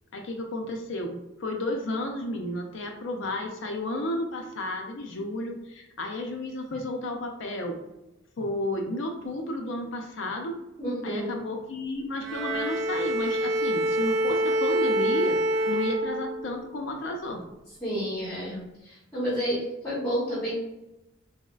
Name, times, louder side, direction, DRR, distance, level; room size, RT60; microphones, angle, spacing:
voice 1, 0.1-7.8 8.4-10.6 11.0-15.4 15.7-17.4, left 1 dB, 65° left, 3 dB, 0.5 m, -32 dB
voice 2, 10.8-11.4 17.8-20.5, equal, 10° left, -9 dB, 0.8 m, -30 dB
Bowed string instrument, 12.2-16.6, equal, 60° right, 0.3 m, -26 dB
4.0 x 2.0 x 2.3 m, 0.94 s
head